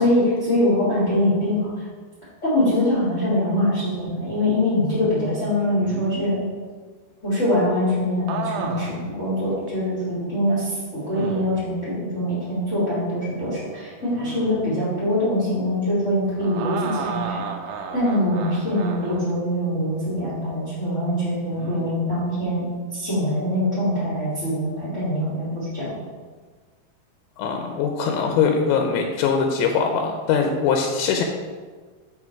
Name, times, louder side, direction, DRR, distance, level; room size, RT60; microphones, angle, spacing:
voice 1, 0.0-1.7 2.4-6.4 7.2-17.4 17.9-22.6 22.9-25.9, left 1 dB, 30° left, -11 dB, 1.3 m, -23 dB
sound 1, 5.6-6.3 8.3-9.1 9.7-9.8 11.1-11.6 14.0-14.7 16.4-19.3 21.5-21.9, right 6 dB, 80° right, 2.1 m, -33 dB
voice 2, 27.4-31.2, left 6 dB, 80° left, 3 dB, 2.4 m, -22 dB
6.0 x 4.8 x 4.5 m, 1.5 s
omnidirectional pair, 4.6 m